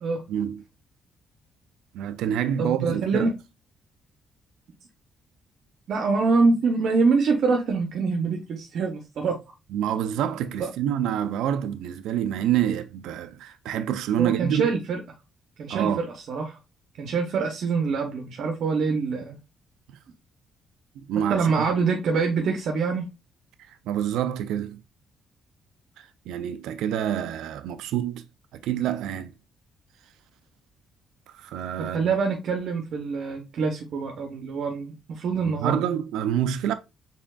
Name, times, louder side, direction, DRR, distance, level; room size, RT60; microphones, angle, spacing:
voice 1, 0.3-0.6 1.9-3.3 9.7-14.7 15.7-16.0 21.0-21.7 23.7-24.8 26.0-28.2 28.5-29.3 31.3-32.1 35.4-36.7, right 10 dB, 85° right, 0.3 m, -27 dB
voice 2, 2.6-3.3 5.9-9.4 10.6-10.7 14.2-15.0 15.6-16.6 17.0-19.4 21.3-23.1 31.9-35.8, right 4 dB, 70° right, 0.7 m, -25 dB
4.4 x 3.4 x 2.2 m
cardioid pair, 90°, 0 cm